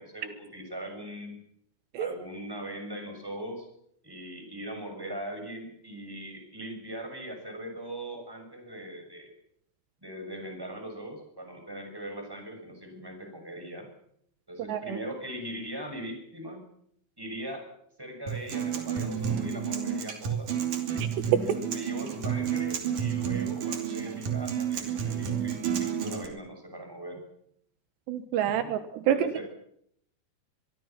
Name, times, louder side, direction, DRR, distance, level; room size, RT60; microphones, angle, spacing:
voice 1, 0.0-1.4 2.0-3.7 4.0-9.4 10.0-13.9 14.5-16.6 17.2-17.7 18.0-20.5 20.9-21.0 21.7-27.2 28.4-28.8 29.1-29.4, right 1 dB, 5° right, 4 dB, 6.4 m, -40 dB
Acoustic guitar, 18.3-26.3, right 8 dB, 50° right, 3.9 m, -30 dB
voice 2, 28.1-29.3, right 10 dB, 80° right, 10 dB, 3.3 m, -28 dB
24.0 x 23.5 x 5.9 m, 0.70 s
omnidirectional pair, 5.0 m